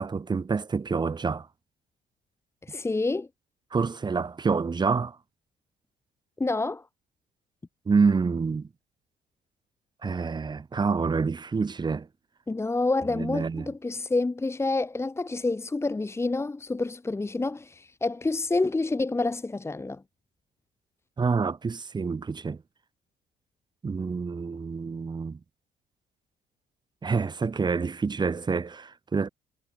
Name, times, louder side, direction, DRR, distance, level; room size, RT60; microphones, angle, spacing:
voice 1, 0.0-1.5 3.7-5.2 7.9-8.7 10.0-12.1 13.1-13.7 21.2-22.6 23.8-25.4 27.0-29.3, right 5 dB, 25° right, 2.2 m, -27 dB
voice 2, 2.7-3.3 6.4-6.8 12.5-20.0, left 3 dB, 15° left, 1.8 m, -28 dB
cardioid pair, 110°, 17 cm